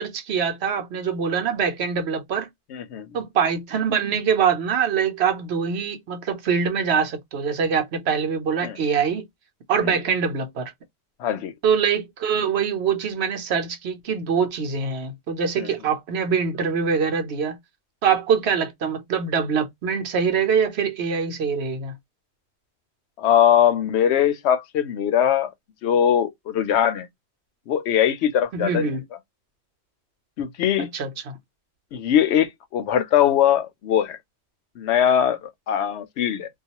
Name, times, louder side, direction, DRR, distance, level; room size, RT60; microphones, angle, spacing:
voice 1, 0.0-2.5 3.1-9.3 9.7-10.7 11.6-17.6 18.0-21.9 28.5-29.0 30.8-31.4, right 6 dB, 75° right, 1.0 m, -24 dB
voice 2, 2.7-3.2 8.6-8.8 9.8-10.0 11.2-11.5 15.6-15.7 23.2-25.5 25.8-27.1 27.7-28.9 30.4-30.9 31.9-34.2 34.8-36.5, left 9 dB, 85° left, 0.9 m, -21 dB
2.4 x 2.3 x 2.8 m
omnidirectional pair, 1.1 m